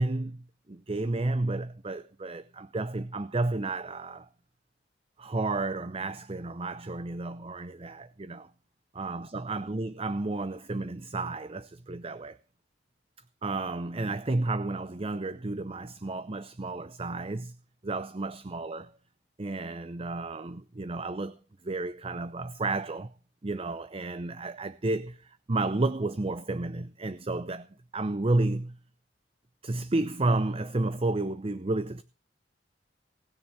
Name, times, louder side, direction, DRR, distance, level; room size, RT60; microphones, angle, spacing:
voice 1, 0.0-4.3 5.2-8.5 8.9-12.4 13.4-17.6 17.8-19.0 19.4-21.4 21.6-23.1 23.4-27.7 27.9-28.8 29.6-32.0, right 2 dB, 30° right, 0.7 m, -31 dB
19.5 x 7.1 x 7.7 m
head